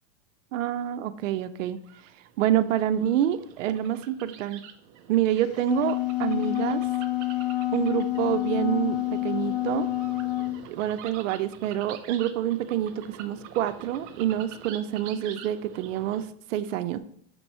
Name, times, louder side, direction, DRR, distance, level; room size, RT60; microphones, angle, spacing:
voice 1, 0.5-1.8 2.4-4.7 5.1-6.8 7.7-9.9 10.7-17.0, right 11 dB, 75° right, 12 dB, 0.6 m, -27 dB
sound 1, 1.7-16.3, right 9 dB, 30° right, 0.4 m, -46 dB
Wind instrument woodwind instrument, 5.4-10.6, left 16 dB, 40° left, 0.7 m, -28 dB
7.0 x 3.0 x 5.3 m, 0.70 s
supercardioid pair, 150°, 38 cm